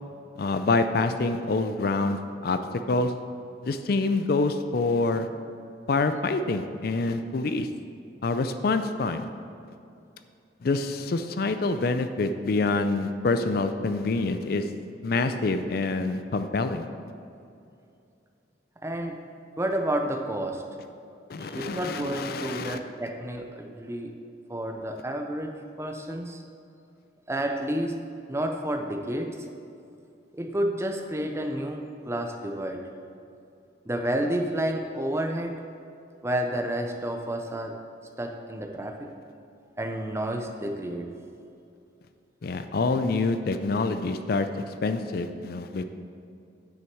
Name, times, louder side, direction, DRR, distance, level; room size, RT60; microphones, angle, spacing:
voice 1, 0.4-2.6 2.9-3.1 3.6-5.3 5.9-7.7 8.2-9.3 10.6-14.6 15.0-16.9 21.3-22.8 42.4-44.5 44.8-45.8, left 3 dB, 55° left, 9 dB, 0.4 m, -26 dB
voice 2, 18.8-19.2 19.6-20.6 21.4-24.1 24.5-26.4 27.3-29.4 30.3-32.9 33.9-35.6 36.2-37.8 38.2-39.1 39.8-41.1, right 1 dB, 15° right, 4 dB, 0.5 m, -30 dB
8.8 x 6.2 x 4.6 m, 2.6 s
head